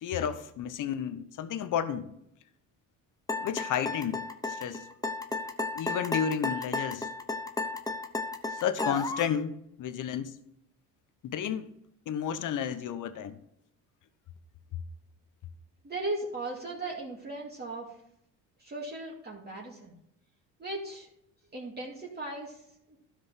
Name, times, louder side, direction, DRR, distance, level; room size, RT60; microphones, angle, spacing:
voice 1, 0.0-2.1 3.4-4.9 5.7-7.1 8.5-10.4 11.2-11.7 12.1-13.4, left 8 dB, 55° left, 1.0 m, -32 dB
sound 1, 3.3-9.4, left 3 dB, 10° left, 0.8 m, -33 dB
voice 2, 15.8-17.9 18.6-19.9 20.6-21.1 21.5-22.6 22.9-23.0, right 2 dB, 25° right, 2.2 m, -37 dB
12.5 x 5.2 x 5.8 m
cardioid pair, 90°, 36 cm